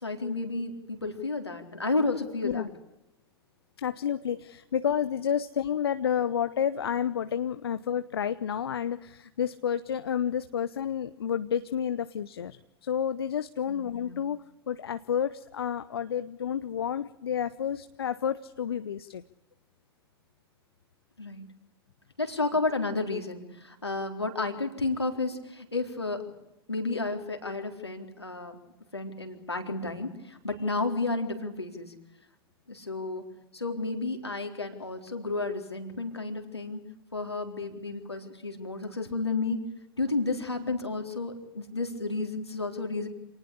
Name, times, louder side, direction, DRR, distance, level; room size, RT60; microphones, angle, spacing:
voice 1, 0.0-2.7 13.7-14.2 21.2-21.4 22.2-26.2 26.7-28.6 28.9-31.9 32.7-33.3 33.5-36.8 37.1-39.6 40.0-43.1, left 3 dB, 85° left, 4 dB, 4.0 m, -32 dB
voice 2, 3.8-19.2 40.5-40.8, left 8 dB, 70° left, 13 dB, 0.9 m, -30 dB
27.5 x 19.0 x 8.4 m, 0.90 s
figure-of-eight pair, 95°, 13 cm